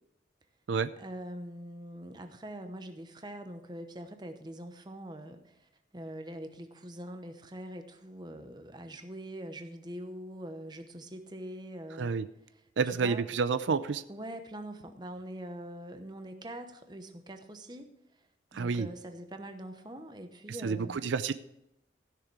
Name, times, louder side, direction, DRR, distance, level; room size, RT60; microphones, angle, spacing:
voice 1, 1.0-12.1 12.5-12.6 12.9-13.2 14.1-17.9 18.5-21.0, right 1 dB, 25° right, 7 dB, 0.9 m, -43 dB
voice 2, 12.8-14.0 18.5-18.9 20.6-21.3, right 5 dB, 90° right, 14 dB, 0.5 m, -29 dB
15.5 x 6.6 x 4.7 m, 0.82 s
head